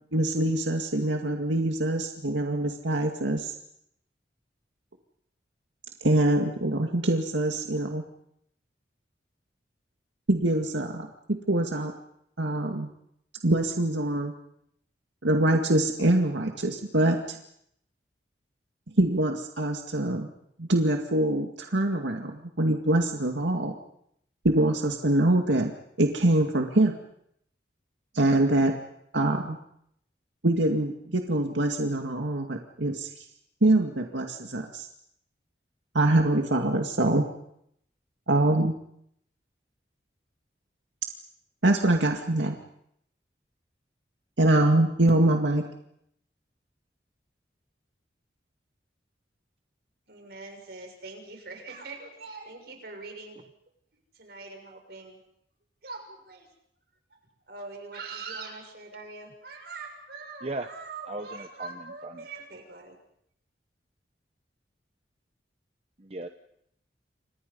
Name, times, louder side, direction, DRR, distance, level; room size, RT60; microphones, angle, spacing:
voice 1, 0.1-3.5 6.0-8.0 10.3-11.9 12.4-12.9 13.4-14.3 15.2-17.4 19.0-20.3 20.6-23.7 24.4-25.7 26.0-27.0 28.1-28.7 29.1-29.6 30.4-33.2 33.6-34.9 35.9-37.2 38.3-38.7 41.6-42.6 44.4-45.6, right 1 dB, 90° right, 3 dB, 2.2 m, -24 dB
voice 2, 50.1-53.4 54.1-55.2 55.8-56.5 57.1-57.2 57.5-63.0, right 3 dB, 60° right, 3 dB, 6.6 m, -42 dB
voice 3, 61.1-61.7 62.0-62.3 66.0-66.3, right 2 dB, 35° right, 7 dB, 1.0 m, -36 dB
29.5 x 25.5 x 5.5 m, 0.74 s
head